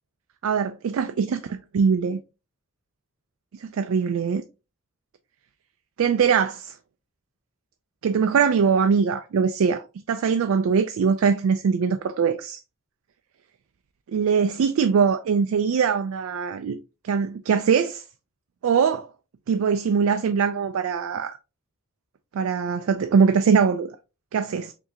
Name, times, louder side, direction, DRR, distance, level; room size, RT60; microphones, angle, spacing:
voice 1, 0.4-2.2 3.5-4.4 6.0-6.8 8.0-12.6 14.1-18.0 18.6-19.1 19.5-21.4 22.3-24.0 24.3-24.7, right 6 dB, 85° right, 0.4 m, -22 dB
4.7 x 2.8 x 2.7 m
head